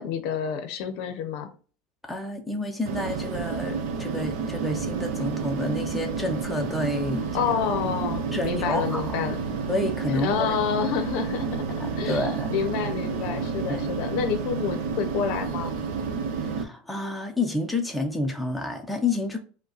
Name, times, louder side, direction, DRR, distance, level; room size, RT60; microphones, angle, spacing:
voice 1, 0.0-1.5 7.3-9.4 10.1-11.6 12.0-15.7, left 7 dB, 55° left, 0.7 m, -28 dB
voice 2, 2.0-7.3 8.3-9.0 9.7-10.5 11.8-12.5 13.7-13.9 16.5-19.4, left 2 dB, 5° left, 0.6 m, -29 dB
sound 1, 2.9-16.6, right 5 dB, 60° right, 0.8 m, -30 dB
5.2 x 2.2 x 4.0 m
supercardioid pair, 160°, 0 cm